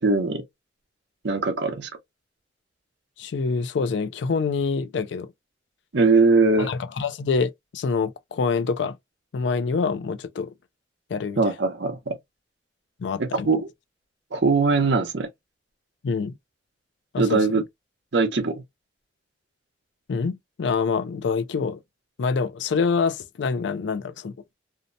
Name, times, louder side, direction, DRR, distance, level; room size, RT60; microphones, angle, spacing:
voice 1, 0.0-0.4 1.2-1.9 5.9-6.7 11.4-12.2 13.2-13.7 14.3-15.3 17.2-17.6 18.1-18.6, right 4 dB, 70° right, 0.7 m, -21 dB
voice 2, 3.2-5.3 6.6-9.0 9.3-10.5 11.1-11.4 13.0-13.5 16.0-16.4 17.1-17.5 20.1-21.8 22.2-24.3, left 5 dB, 70° left, 0.4 m, -26 dB
2.7 x 2.1 x 2.5 m
head